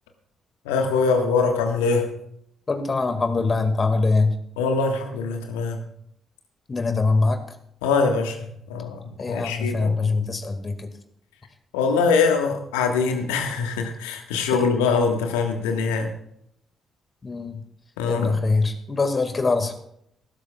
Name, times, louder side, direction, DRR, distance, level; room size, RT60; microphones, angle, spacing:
voice 1, 0.6-2.1 4.6-5.8 7.8-9.9 11.7-16.1 18.0-18.4, left 4 dB, 75° left, 4 dB, 1.5 m, -23 dB
voice 2, 2.7-4.4 6.7-7.4 9.2-10.9 17.2-17.6 18.1-19.7, left 3 dB, 35° left, 7 dB, 2.0 m, -23 dB
20.5 x 12.5 x 2.4 m, 0.73 s
figure-of-eight pair, 40°, 0 cm